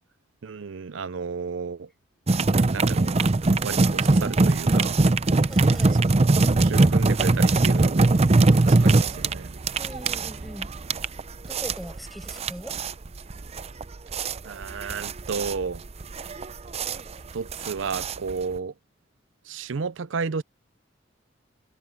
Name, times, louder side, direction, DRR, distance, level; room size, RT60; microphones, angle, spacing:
voice 1, 0.4-1.9 2.7-3.3 3.6-5.0 6.5-8.2 8.6-9.6 14.4-15.8 17.3-18.7 19.5-20.4, right 5 dB, 85° right, 0.6 m, -32 dB
sound 1, 2.3-18.6, right 2 dB, 35° right, 0.6 m, -21 dB
voice 2, 5.5-6.0 9.8-10.7 11.4-12.8, equal, ahead, 6.4 m, -40 dB
head